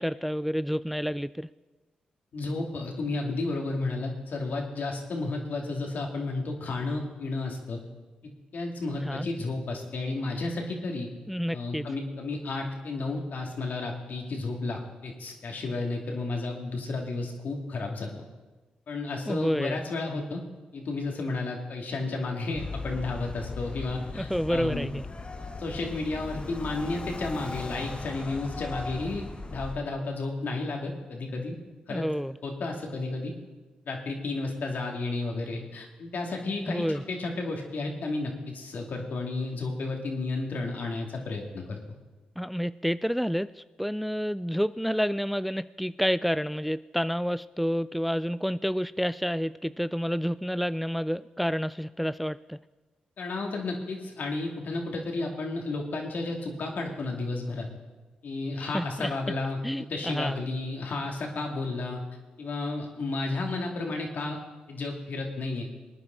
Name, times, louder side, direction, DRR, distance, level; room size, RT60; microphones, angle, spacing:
voice 1, 0.0-1.5 9.0-9.3 11.3-11.9 19.3-19.8 24.1-25.1 31.9-32.3 36.7-37.0 42.4-52.6 58.6-59.1 59.6-60.4, equal, ahead, 15 dB, 0.3 m, -29 dB
voice 2, 2.3-7.8 8.5-11.1 11.5-18.1 18.9-20.4 20.7-24.9 25.6-29.2 29.5-31.6 31.9-32.0 32.4-33.3 33.9-41.8 53.2-57.7 58.2-59.6 59.9-62.0 62.4-64.4 64.7-65.7, left 3 dB, 65° left, 1 dB, 2.5 m, -32 dB
sound 1, 22.5-29.8, left 3 dB, 35° left, 1.3 m, -38 dB
20.5 x 9.5 x 4.0 m, 1.2 s
supercardioid pair, 50°, 3 cm